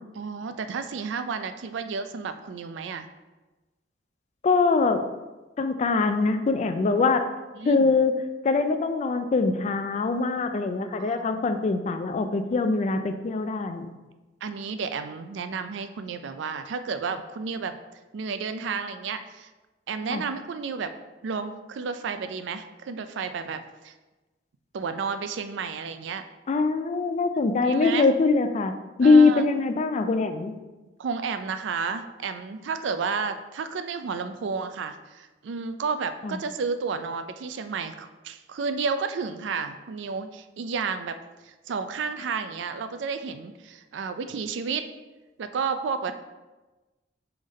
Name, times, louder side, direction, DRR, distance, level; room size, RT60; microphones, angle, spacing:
voice 1, 0.1-3.1 7.6-7.9 11.0-11.5 14.4-17.8 18.1-19.5 19.9-20.9 21.2-23.9 24.7-26.2 27.5-28.1 29.0-29.4 31.0-41.2 41.4-44.9 45.4-46.1, right 5 dB, 70° right, 9 dB, 0.4 m, -32 dB
voice 2, 4.4-5.1 5.6-7.3 7.7-8.1 8.4-13.9 20.1-20.2 26.5-28.7 29.0-30.6 36.2-36.4, left 4 dB, 40° left, 8 dB, 0.3 m, -23 dB
3.7 x 3.4 x 4.1 m, 1.1 s
head